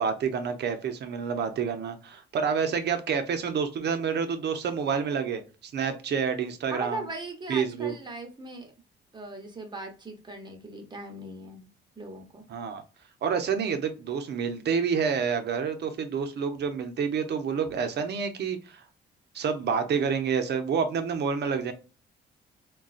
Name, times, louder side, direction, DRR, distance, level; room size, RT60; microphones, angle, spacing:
voice 1, 0.0-7.0 7.5-7.9 12.5-12.8 13.2-18.8 19.3-21.7, right 6 dB, 60° right, 0.7 m, -28 dB
voice 2, 6.7-8.7 9.1-11.7 12.0-12.5, right 2 dB, 20° right, 0.9 m, -39 dB
3.8 x 2.3 x 2.4 m
cardioid pair, 90°, 20 cm